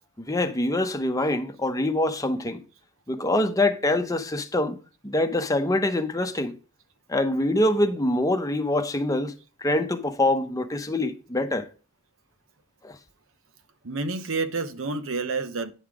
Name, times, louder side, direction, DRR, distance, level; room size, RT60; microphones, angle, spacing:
voice 1, 0.2-2.6 3.1-4.8 5.0-6.6 7.1-9.3 9.6-11.7 12.8-13.0, left 1 dB, 15° left, 0.9 m, -24 dB
voice 2, 13.8-15.7, right 3 dB, 65° right, 1.0 m, -29 dB
10.0 x 5.7 x 4.8 m
head